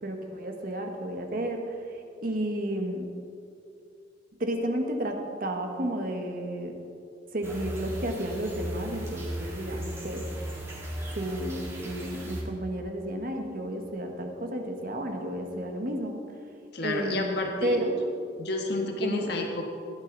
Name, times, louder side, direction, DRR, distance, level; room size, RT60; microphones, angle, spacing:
voice 1, 0.0-3.1 4.4-6.8 7.3-10.3 11.1-16.2 16.8-18.0 19.0-19.3, right 1 dB, 50° right, 3 dB, 1.4 m, -32 dB
sound 1, 7.4-12.4, equal, 15° right, 2.4 m, -37 dB
voice 2, 16.7-17.8 18.4-19.6, left 2 dB, 60° left, 2 dB, 1.4 m, -30 dB
15.5 x 11.0 x 4.0 m, 2.5 s
head